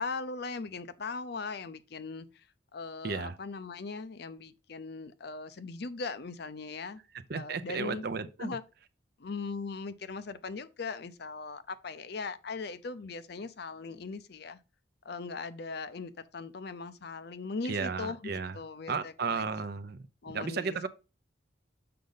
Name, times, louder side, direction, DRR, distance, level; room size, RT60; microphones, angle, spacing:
voice 1, 0.0-2.5 2.7-7.0 7.3-8.0 8.4-8.6 9.2-14.6 15.0-19.5 20.2-20.9, left 4 dB, 55° left, 0.6 m, -39 dB
voice 2, 3.0-3.3 7.3-8.6 17.6-18.6 18.9-20.0 20.3-20.9, right 5 dB, 55° right, 0.6 m, -34 dB
6.7 x 5.2 x 3.9 m
head